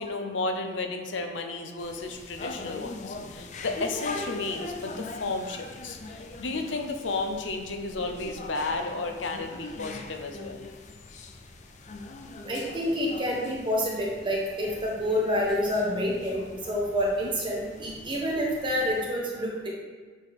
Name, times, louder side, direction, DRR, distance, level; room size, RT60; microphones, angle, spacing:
voice 1, 0.0-10.6, left 3 dB, 80° left, 5 dB, 0.7 m, -33 dB
sound 1, 1.8-19.0, left 2 dB, 40° left, 0.5 m, -42 dB
voice 2, 12.4-19.7, equal, 25° right, -3 dB, 1.4 m, -28 dB
7.9 x 4.4 x 3.7 m, 1.5 s
head